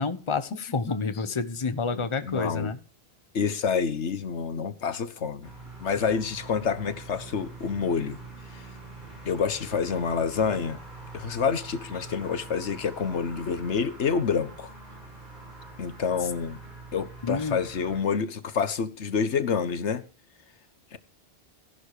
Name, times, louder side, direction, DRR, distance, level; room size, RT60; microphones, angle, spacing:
voice 1, 0.0-2.8 17.2-17.6, left 4 dB, 30° left, 1.0 m, -29 dB
voice 2, 1.9-2.7 3.3-5.5 5.8-8.2 8.5-8.6 9.2-10.8 11.1-14.7 15.8-16.6 16.9-20.0 20.9-21.0, left 6 dB, 85° left, 1.5 m, -28 dB
sound 1, 5.4-18.0, right 3 dB, 45° right, 6.2 m, -44 dB
14.5 x 11.5 x 4.9 m
omnidirectional pair, 1.1 m